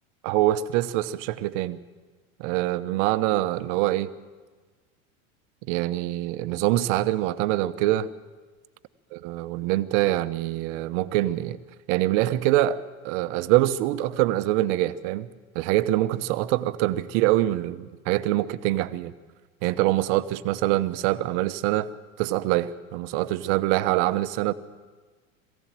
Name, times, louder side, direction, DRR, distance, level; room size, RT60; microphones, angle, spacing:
voice 1, 0.2-1.8 2.4-4.1 5.6-8.1 9.1-11.6 11.9-15.3 15.5-19.1 19.6-21.9 22.2-24.5, right 15 dB, 60° right, 1.1 m, -24 dB
22.5 x 16.0 x 7.6 m
hypercardioid pair, 100°, 42 cm